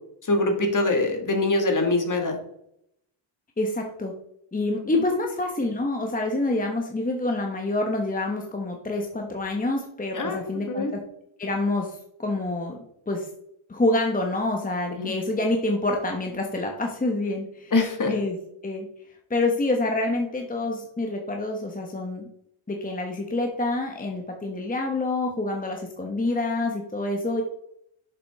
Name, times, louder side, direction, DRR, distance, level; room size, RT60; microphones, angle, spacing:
voice 1, 0.3-2.3 10.1-10.4 10.7-10.9 15.0-15.1 17.7-18.1, left 2 dB, 40° left, 4 dB, 1.8 m, -23 dB
voice 2, 3.6-4.1 4.5-11.0 11.4-12.8 13.1-13.3 13.7-17.7 18.1-18.4 18.6-18.9 19.3-22.3 22.7-27.4, left 2 dB, 15° left, 2 dB, 1.0 m, -27 dB
7.0 x 5.1 x 3.5 m, 0.75 s
cardioid pair, 75°, 49 cm